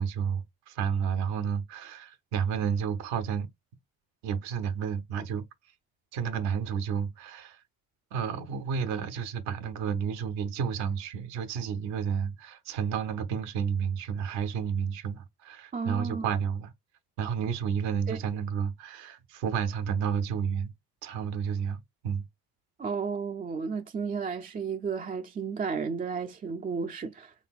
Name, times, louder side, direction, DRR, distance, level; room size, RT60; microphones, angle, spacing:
voice 1, 0.0-3.5 4.2-5.4 6.1-7.6 8.1-16.7 17.2-20.7 21.0-22.2, right 7 dB, 80° right, 0.9 m, -31 dB
voice 2, 15.7-16.2 18.1-18.2 22.8-27.3, right 5 dB, 20° right, 0.4 m, -33 dB
4.1 x 3.4 x 2.3 m
supercardioid pair, 70°, 43 cm